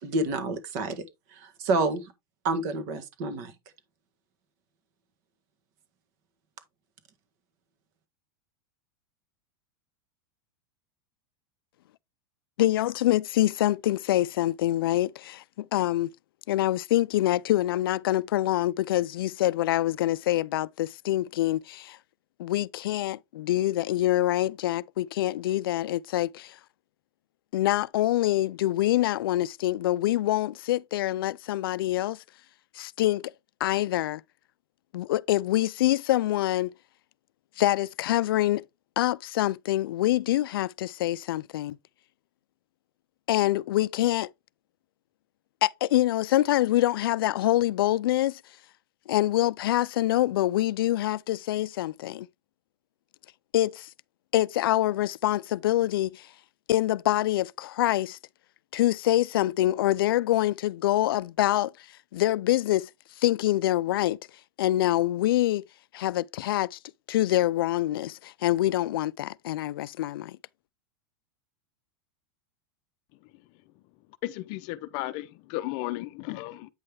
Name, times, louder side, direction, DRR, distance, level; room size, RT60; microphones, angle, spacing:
voice 1, 0.0-1.0 1.3-2.1 2.4-3.5, right 2 dB, 50° right, 1.7 m, -28 dB
voice 2, 12.6-16.1 16.5-22.0 22.4-26.5 27.5-32.2 32.8-33.2 33.6-34.2 34.9-36.7 37.6-38.6 39.0-41.8 43.3-44.3 45.6-48.4 49.1-52.3 53.5-53.9 54.3-56.3 56.7-58.2 58.7-61.7 62.1-62.9 63.2-64.2 64.6-65.6 65.9-66.8 67.1-70.4, left 14 dB, 85° left, 0.4 m, -25 dB
voice 3, 74.2-76.7, left 17 dB, 40° left, 0.6 m, -34 dB
8.9 x 5.5 x 3.4 m
supercardioid pair, 160°, 12 cm